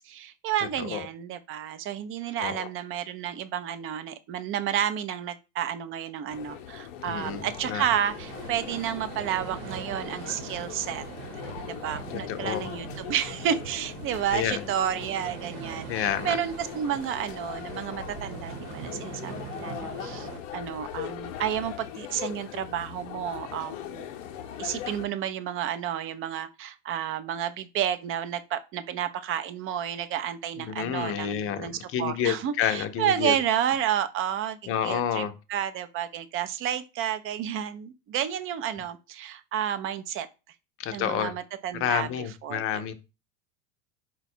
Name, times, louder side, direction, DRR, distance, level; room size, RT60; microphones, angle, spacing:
voice 1, 0.0-11.0 11.7-20.3 20.5-24.1 24.6-34.6 34.8-35.2 35.5-40.3 40.9-42.1 42.4-42.6, right 10 dB, 35° right, 0.5 m, -31 dB
voice 2, 0.6-1.1 2.4-2.7 7.0-7.8 12.1-12.7 14.3-14.6 15.9-16.4 30.6-33.4 34.7-35.3 40.8-41.3 41.8-42.9, left 9 dB, 35° left, 0.6 m, -29 dB
sound 1, 6.3-25.1, left 10 dB, 80° left, 0.7 m, -40 dB
sound 2, 7.2-20.4, right 6 dB, 60° right, 1.0 m, -42 dB
4.0 x 2.3 x 4.3 m
supercardioid pair, 110°, 37 cm